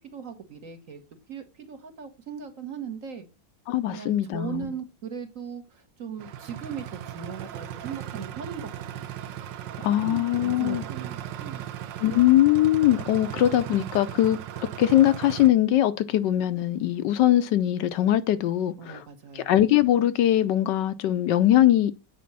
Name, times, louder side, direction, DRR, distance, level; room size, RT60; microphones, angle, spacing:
voice 1, 0.1-1.0 1.3-3.3 3.9-9.1 10.0-11.7 13.2-13.4 18.8-19.5, right 7 dB, 45° right, 1.5 m, -38 dB
voice 2, 3.7-4.7 9.8-10.8 12.0-14.4 14.8-19.0 19.3-21.9, left 13 dB, 75° left, 1.2 m, -21 dB
sound 1, 6.2-15.5, right 11 dB, 75° right, 1.4 m, -37 dB
8.4 x 5.3 x 5.4 m
omnidirectional pair, 2.0 m